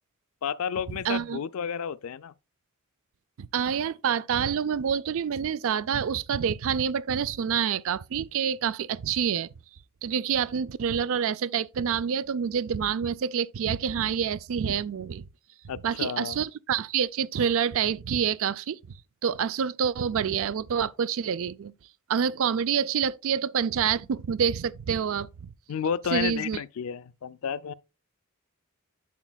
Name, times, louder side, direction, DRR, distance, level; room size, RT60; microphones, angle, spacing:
voice 1, 0.4-2.3 15.7-16.4 25.7-27.7, left 7 dB, 70° left, 0.4 m, -31 dB
voice 2, 1.0-1.4 3.4-9.5 10.0-15.3 15.8-18.8 19.2-21.7 22.1-25.5 26.1-26.6, right 7 dB, 65° right, 0.4 m, -27 dB
8.1 x 7.4 x 2.3 m
head